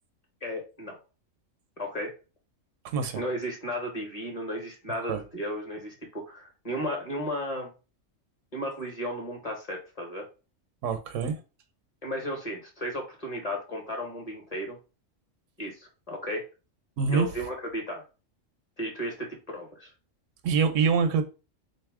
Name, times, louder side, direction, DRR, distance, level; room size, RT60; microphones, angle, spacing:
voice 1, 0.4-1.0 1.8-2.1 3.1-7.7 8.5-10.3 12.0-14.8 15.6-16.4 17.1-18.0 18.8-19.9, equal, 30° left, 1.0 m, -34 dB
voice 2, 2.9-3.2 5.1-5.2 10.8-11.4 17.0-17.3 20.4-21.2, right 5 dB, 75° right, 1.0 m, -25 dB
3.9 x 2.6 x 3.5 m
omnidirectional pair, 1.3 m